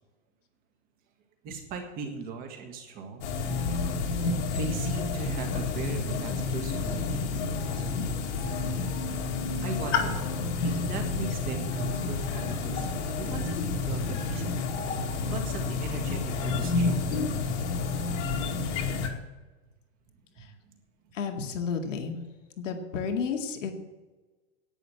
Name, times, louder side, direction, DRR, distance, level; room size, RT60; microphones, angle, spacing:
voice 1, 1.4-3.3 4.5-7.8 9.6-10.2 10.6-12.9 13.2-14.6 15.3-17.3, right 4 dB, 25° right, 4 dB, 1.8 m, -38 dB
sound 1, 3.2-19.1, left 4 dB, 70° left, 2.3 m, -30 dB
voice 2, 21.1-22.2 22.6-23.7, left 6 dB, 85° left, 3 dB, 2.3 m, -32 dB
11.0 x 8.8 x 7.9 m, 1.2 s
supercardioid pair, 170°, 37 cm